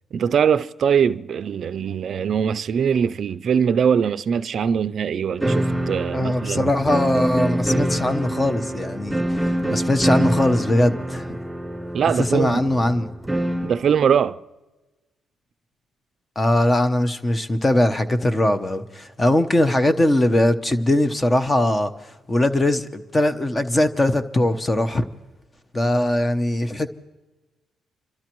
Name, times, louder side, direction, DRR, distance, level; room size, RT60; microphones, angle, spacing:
voice 1, 0.1-6.7 11.9-12.7 13.6-14.4, right 7 dB, 55° right, 0.4 m, -22 dB
sound 1, 5.4-13.8, right 1 dB, ahead, 3.2 m, -25 dB
voice 2, 6.1-11.4 12.3-13.1 16.4-25.0 25.7-26.9, left 1 dB, 20° left, 0.9 m, -21 dB
29.5 x 13.0 x 3.0 m
cardioid pair, 90°, 0 cm